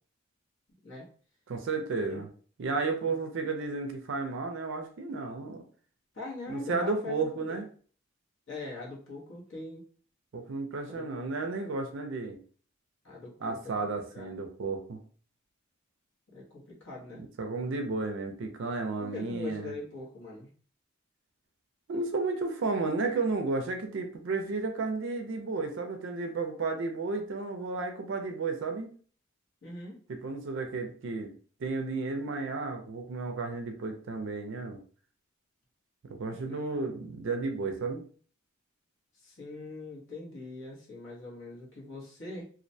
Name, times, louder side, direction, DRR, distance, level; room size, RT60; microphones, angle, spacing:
voice 1, 1.5-2.3 2.6-5.6 6.5-7.7 10.3-12.4 13.4-15.0 17.1-19.7 21.9-28.9 30.1-31.3 31.6-34.8 36.0-38.0, right 3 dB, 60° right, 5 dB, 0.4 m, -33 dB
voice 2, 6.1-7.6 8.5-9.9 10.8-11.8 13.0-13.9 14.1-14.3 16.3-17.2 19.0-20.5 29.6-30.0 36.3-36.9 39.2-42.4, left 2 dB, 65° left, -3 dB, 0.9 m, -42 dB
2.4 x 2.1 x 2.6 m, 0.44 s
head